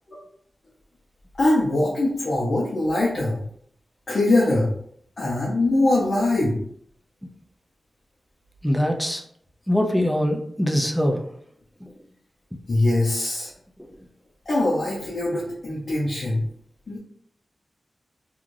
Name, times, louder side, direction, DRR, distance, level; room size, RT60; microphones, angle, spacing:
voice 1, 1.4-3.4 4.1-4.7 5.2-6.6 12.7-13.5 14.5-16.4 16.9-17.0, left 2 dB, 45° left, -6 dB, 0.6 m, -22 dB
voice 2, 8.6-9.2 9.7-11.2 11.8-11.9 13.8-13.9, equal, ahead, 2 dB, 0.4 m, -23 dB
2.5 x 2.3 x 3.1 m, 0.66 s
wide cardioid pair, 155°, 0 cm